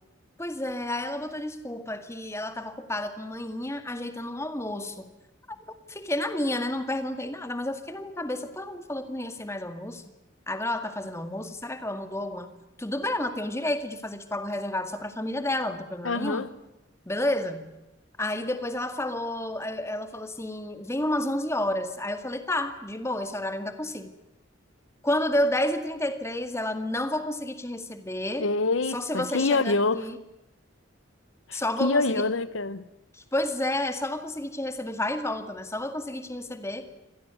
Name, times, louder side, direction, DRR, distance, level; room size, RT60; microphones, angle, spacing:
voice 1, 0.4-5.1 5.9-10.0 10.5-12.5 12.8-16.5 17.1-17.7 18.2-24.1 25.0-28.5 28.9-30.2 31.5-32.2 33.1-36.9, left 1 dB, 15° left, 2.0 m, -30 dB
voice 2, 16.0-16.5 28.4-30.0 31.5-32.8, left 3 dB, 85° left, 1.0 m, -26 dB
26.0 x 18.0 x 9.5 m
head